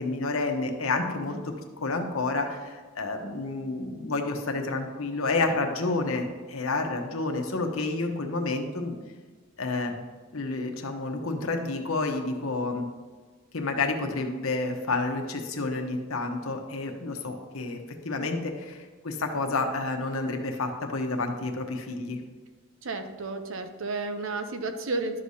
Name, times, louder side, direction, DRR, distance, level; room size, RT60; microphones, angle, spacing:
voice 1, 0.0-1.4 1.8-9.0 9.6-9.9 10.3-12.9 13.5-17.8 18.0-22.2, left 3 dB, 75° left, 3 dB, 1.0 m, -29 dB
voice 2, 22.8-25.2, right 3 dB, 65° right, 7 dB, 0.7 m, -32 dB
11.5 x 6.4 x 2.8 m, 1.4 s
head